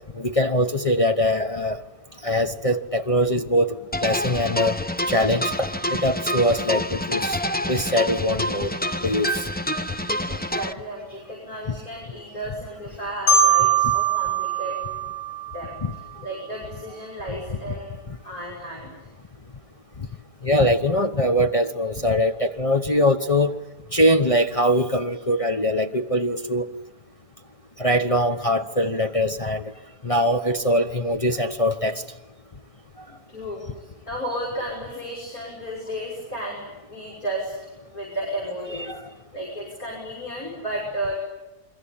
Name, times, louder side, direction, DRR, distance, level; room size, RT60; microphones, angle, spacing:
voice 1, 0.1-1.8 2.2-4.8 5.1-7.4 7.7-8.7 9.0-9.5 13.8-13.9 15.8-15.9 20.0-20.1 20.4-23.5 23.9-26.7 27.8-29.6 30.0-32.0 38.9-39.0, equal, 25° left, 4 dB, 0.9 m, -22 dB
sound 1, 3.9-10.7, equal, 10° left, 0.5 m, -27 dB
voice 2, 10.3-14.8 15.5-15.8 16.2-19.1 33.1-33.6 34.1-37.5 37.9-38.9 39.3-41.2, right 1 dB, 60° left, -3 dB, 6.7 m, -33 dB
Marimba xylophone, 13.3-16.1, right 6 dB, 85° left, 6.9 m, -22 dB
29.0 x 23.0 x 8.8 m, 1.0 s
omnidirectional pair, 1.7 m